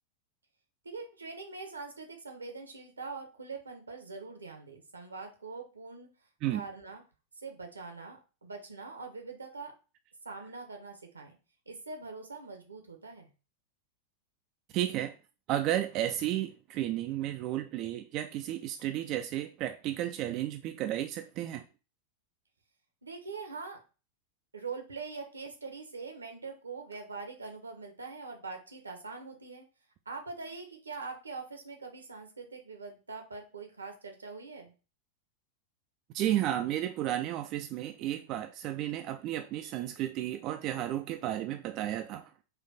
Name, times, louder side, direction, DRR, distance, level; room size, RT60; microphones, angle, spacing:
voice 1, 0.8-6.1 6.5-7.0 7.4-9.7 10.2-11.4 11.7-13.3 23.0-23.8 24.5-29.6 30.1-34.7, right 4 dB, 75° right, 0.9 m, -43 dB
voice 2, 14.7-15.1 15.5-21.6 36.1-42.3, right 12 dB, 40° right, 0.3 m, -33 dB
4.3 x 2.6 x 4.0 m
figure-of-eight pair, 90°, 0 cm